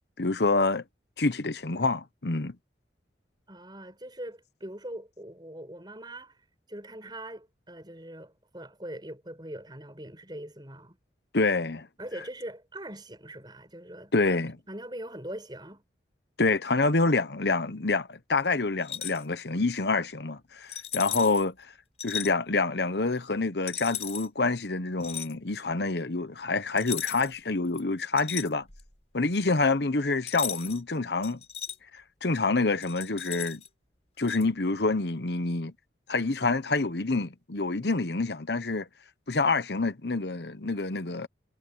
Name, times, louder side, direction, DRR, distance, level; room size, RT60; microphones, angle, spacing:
voice 1, 0.2-0.8 1.2-2.5 11.3-11.9 14.1-14.6 16.4-21.5 22.0-28.7 29.1-31.4 32.2-33.6 34.2-35.7 36.1-38.9 39.3-41.3, left 3 dB, 60° left, 1.1 m, -27 dB
voice 2, 3.5-11.0 12.0-14.1 14.7-15.8, right 1 dB, 25° right, 6.4 m, -42 dB
sound 1, 18.8-19.2 20.7-21.4 22.0-22.3 23.7-24.3 25.0-25.3 26.8-27.4 27.7-28.9 30.3-30.8 31.2-31.8 32.8-33.7 34.3-34.4, left 9 dB, 35° left, 4.4 m, -36 dB
head